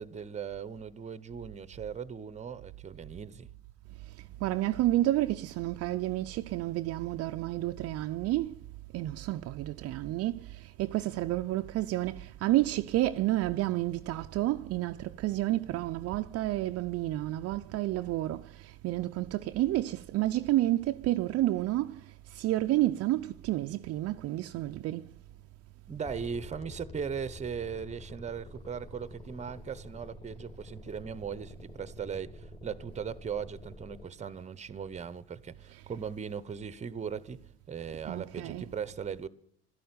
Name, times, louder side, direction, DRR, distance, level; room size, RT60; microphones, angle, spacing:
voice 1, 0.0-3.5 25.9-37.4 37.7-39.3, right 7 dB, 20° right, 0.9 m, -38 dB
voice 2, 4.1-8.6 8.9-25.1 35.7-35.8 38.0-38.7, right 15 dB, 50° right, 0.5 m, -30 dB
sound 1, 26.0-34.0, left 1 dB, 20° left, 2.9 m, -48 dB
13.0 x 11.0 x 9.5 m
supercardioid pair, 95°, 31 cm